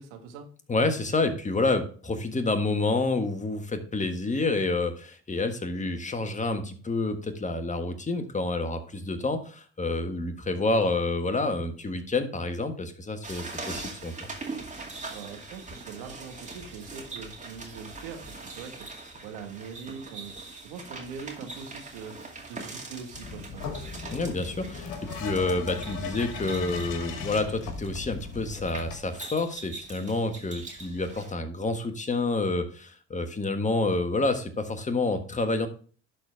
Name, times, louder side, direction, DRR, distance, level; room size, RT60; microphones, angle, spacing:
voice 1, 0.0-0.5 15.1-18.9 19.2-22.2 22.5-23.9, right 6 dB, 85° right, 5 dB, 1.6 m, -42 dB
voice 2, 0.7-14.3 24.1-35.7, left 2 dB, 20° left, 7 dB, 1.5 m, -28 dB
sound 1, 13.2-31.3, right 3 dB, 20° right, 2.3 m, -42 dB
sound 2, 23.1-29.0, left 5 dB, 70° left, 2.2 m, -37 dB
11.5 x 4.3 x 3.4 m, 0.41 s
supercardioid pair, 75°, 34 cm